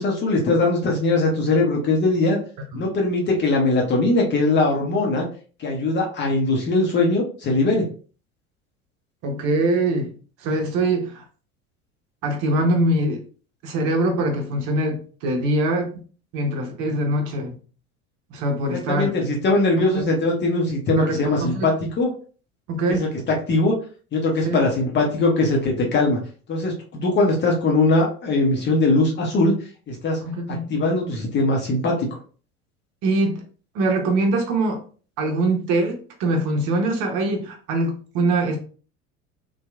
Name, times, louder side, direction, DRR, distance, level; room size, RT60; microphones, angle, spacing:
voice 1, 0.0-2.4 2.7-5.3 5.6-7.9 18.6-22.1 22.9-23.8 24.1-26.2 26.5-30.2 30.5-32.1, left 2 dB, 25° left, 0 dB, 0.8 m, -21 dB
voice 2, 9.2-10.1 10.4-11.2 12.2-13.2 13.6-15.9 16.3-17.6 18.3-19.1 19.9-20.0 21.0-21.7 22.7-23.1 24.4-24.6 30.2-30.7 33.0-33.4 33.7-34.8 35.2-38.6, right 2 dB, 45° right, 3 dB, 0.8 m, -23 dB
2.8 x 2.3 x 2.2 m, 0.40 s
figure-of-eight pair, 65°, 43 cm